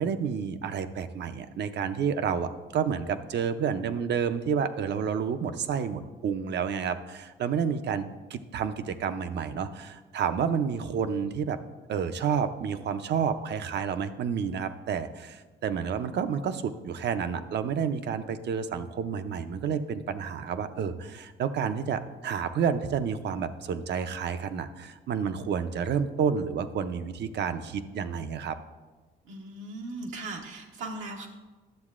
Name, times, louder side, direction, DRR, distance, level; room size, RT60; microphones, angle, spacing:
voice 1, 0.0-11.6 11.9-28.6, right 7 dB, 60° right, 10 dB, 0.5 m, -30 dB
voice 2, 29.2-31.3, right 2 dB, 90° right, 0 dB, 0.9 m, -38 dB
11.5 x 7.1 x 2.4 m, 1.3 s
cardioid pair, 90°, 20 cm